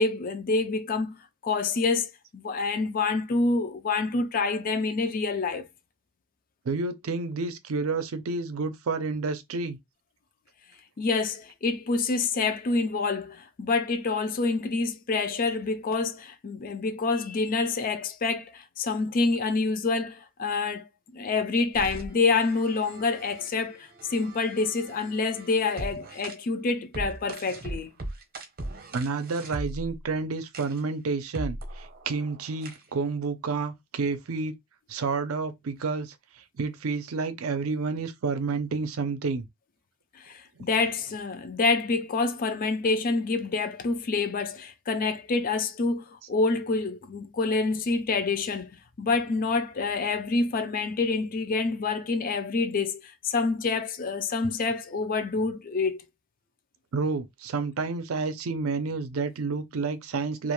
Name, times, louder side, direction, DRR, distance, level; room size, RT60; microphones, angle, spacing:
voice 1, 0.0-5.7 11.0-20.9 21.1-27.9 40.2-48.7 49.0-56.0, left 3 dB, 40° left, 0.4 m, -27 dB
voice 2, 6.7-9.8 28.9-34.5 34.9-39.5 56.9-60.5, right 4 dB, 75° right, 0.5 m, -30 dB
sound 1, 21.7-26.3 26.9-30.0 30.5-30.8 31.3-32.9, right 1 dB, 45° right, 0.8 m, -40 dB
2.4 x 2.2 x 3.0 m
head